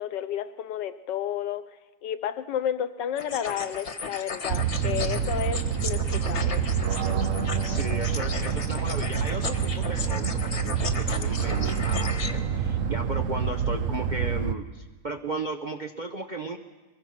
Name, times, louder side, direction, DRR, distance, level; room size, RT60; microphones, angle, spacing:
voice 1, 0.0-1.6 2.0-6.6, left 9 dB, 80° left, 12 dB, 1.5 m, -31 dB
sound 1, 3.2-12.3, left 4 dB, 40° left, 1.5 m, -36 dB
sound 2, 4.5-14.5, right 7 dB, 55° right, 1.1 m, -27 dB
voice 2, 7.6-16.6, right 2 dB, 35° right, 3 dB, 0.8 m, -35 dB
22.5 x 22.5 x 6.0 m, 1.2 s
omnidirectional pair, 1.9 m